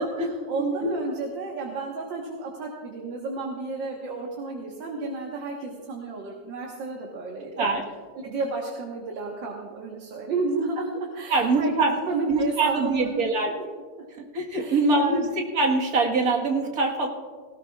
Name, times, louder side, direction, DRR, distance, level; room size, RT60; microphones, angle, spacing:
voice 1, 0.0-7.7 8.2-13.6 14.6-15.3, right 3 dB, 85° right, -1 dB, 2.1 m, -32 dB
voice 2, 11.3-11.9 12.3-13.5 14.2-17.1, right 3 dB, 55° right, 1 dB, 1.9 m, -23 dB
18.5 x 17.5 x 2.4 m, 1.5 s
omnidirectional pair, 2.0 m